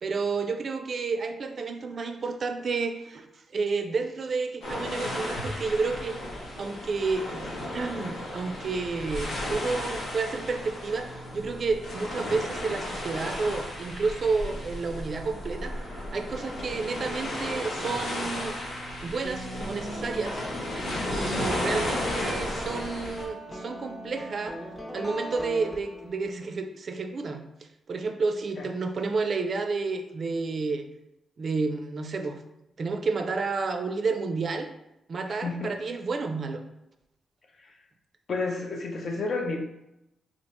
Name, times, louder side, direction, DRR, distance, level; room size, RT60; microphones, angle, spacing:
voice 1, 0.0-3.3 3.5-6.2 6.6-18.6 19.0-20.4 21.1-24.6 24.9-27.5 27.9-30.9 31.4-32.4 32.8-34.7 35.1-36.6, right 4 dB, 55° right, 6 dB, 0.3 m, -30 dB
sound 1, 4.6-23.2, left 1 dB, 85° left, 0.8 m, -34 dB
sound 2, 19.2-26.3, equal, 15° left, 0.6 m, -39 dB
voice 2, 38.3-39.6, left 3 dB, 60° left, 3 dB, 0.5 m, -30 dB
2.8 x 2.1 x 4.1 m, 0.87 s
cardioid pair, 80°, 0 cm